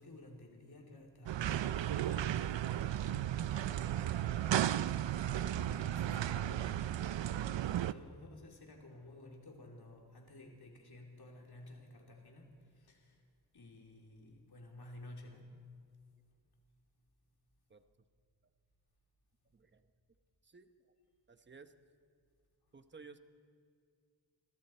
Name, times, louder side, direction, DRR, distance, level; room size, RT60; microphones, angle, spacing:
voice 1, 0.0-13.2 13.5-15.6, left 1 dB, 55° left, 0 dB, 2.9 m, -54 dB
sound 1, 1.3-7.9, right 11 dB, 70° right, 0.6 m, -34 dB
voice 2, 19.5-19.9 20.4-20.7 21.3-21.7 22.7-23.2, right 4 dB, 25° right, 8 dB, 0.9 m, -55 dB
28.0 x 25.0 x 4.4 m, 2.2 s
wide cardioid pair, 150°, 45 cm